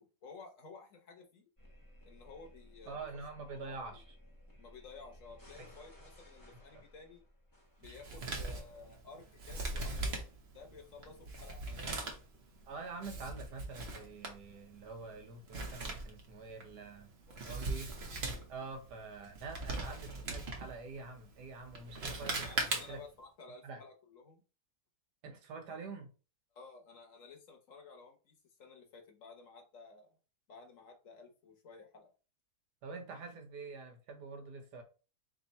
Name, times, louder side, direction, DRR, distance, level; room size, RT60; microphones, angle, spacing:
voice 1, 0.0-1.5 2.0-3.0 3.5-4.0 4.6-7.2 7.8-10.2 10.5-12.0 17.3-17.6 22.4-24.4 26.5-30.1 30.5-32.1, left 4 dB, 55° left, 1.2 m, -54 dB
sound 1, 1.6-8.4, equal, 15° left, 0.9 m, -58 dB
voice 2, 2.9-4.1 5.6-5.7 6.7-6.8 12.7-17.1 17.4-17.9 18.5-23.0 23.6-23.8 25.2-26.1 32.8-34.8, right 3 dB, 80° right, 1.5 m, -46 dB
Male speech man speaking, 7.8-23.2, right 3 dB, 45° right, 0.9 m, -41 dB
3.4 x 2.7 x 4.0 m
omnidirectional pair, 1.7 m